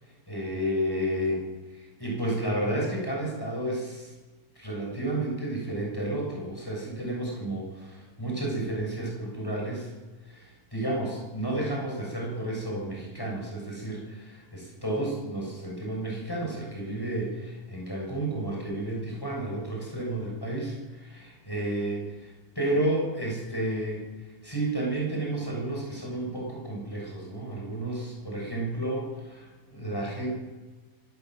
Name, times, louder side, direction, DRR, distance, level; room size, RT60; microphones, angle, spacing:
voice 1, 0.3-1.4 1.7-4.1 4.6-9.9 10.2-24.0 24.4-30.3, right 1 dB, 15° left, -2 dB, 7.3 m, -31 dB
24.5 x 14.0 x 8.0 m, 1.2 s
omnidirectional pair, 1.5 m